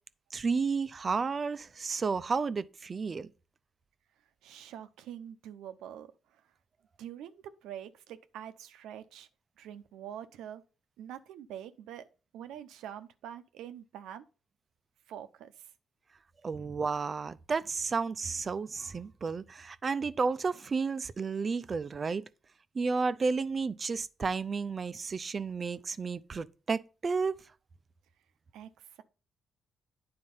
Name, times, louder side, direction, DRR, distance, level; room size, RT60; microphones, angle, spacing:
voice 1, 0.3-3.3 16.4-22.2 22.7-27.3, right 4 dB, 35° right, 0.5 m, -32 dB
voice 2, 4.4-6.4 7.0-9.3 9.6-10.6 11.0-12.0 12.3-14.2 15.1-15.7 28.5-29.0, right 10 dB, 90° right, 0.7 m, -45 dB
9.7 x 4.3 x 5.5 m
cardioid pair, 90°, 0 cm